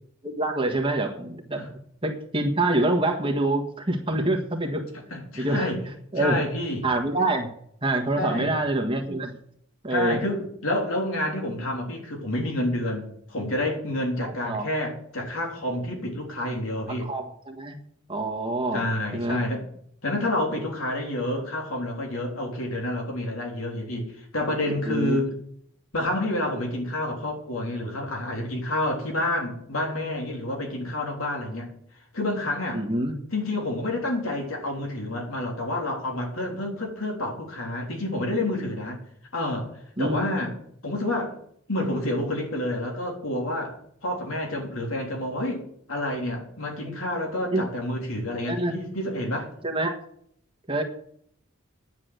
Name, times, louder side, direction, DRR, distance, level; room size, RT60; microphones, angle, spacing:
voice 1, 0.2-4.9 5.3-5.7 6.1-6.4 6.8-7.5 7.8-9.3 9.8-10.2 14.2-14.7 17.0-17.8 18.1-18.8 19.1-19.4 24.7-25.2 32.7-33.2 40.0-40.2 46.9-47.0 47.5-47.6 48.5-48.8 49.6-50.0 50.7-50.8, right 2 dB, 25° right, 3 dB, 1.5 m, -26 dB
voice 2, 5.1-5.8 6.2-6.9 8.2-8.5 9.9-17.1 18.7-19.6 20.0-25.3 25.9-31.7 32.1-32.8 33.3-39.0 39.3-39.7 40.0-40.5 40.8-41.3 41.7-43.7 44.0-45.6 45.9-49.5, left 1 dB, 75° left, 0 dB, 3.6 m, -29 dB
10.5 x 7.3 x 7.9 m, 0.66 s
head